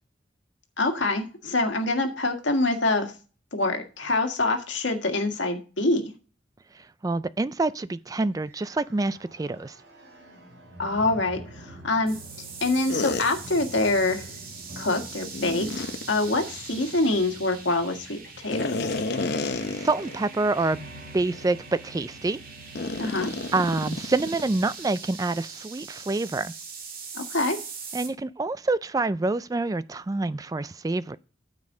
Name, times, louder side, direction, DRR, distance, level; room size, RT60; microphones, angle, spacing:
voice 1, 0.8-3.1 3.5-6.1 10.8-12.2 12.6-14.3 14.8-19.0 23.0-23.3 27.2-27.6, left 2 dB, 85° left, 1.8 m, -25 dB
voice 2, 6.7-9.8 19.7-20.8 21.1-22.4 23.5-26.5 27.9-31.2, right 3 dB, 20° right, 0.3 m, -27 dB
sound 1, 8.3-24.7, equal, 75° right, 3.7 m, -47 dB
sound 2, 12.1-28.1, right 5 dB, 50° right, 2.3 m, -42 dB
sound 3, 12.9-13.3 15.3-16.0 18.5-20.2 20.6-20.7 21.3-21.5 22.8-24.6, left 3 dB, 60° left, 0.8 m, -30 dB
9.4 x 7.5 x 3.8 m
head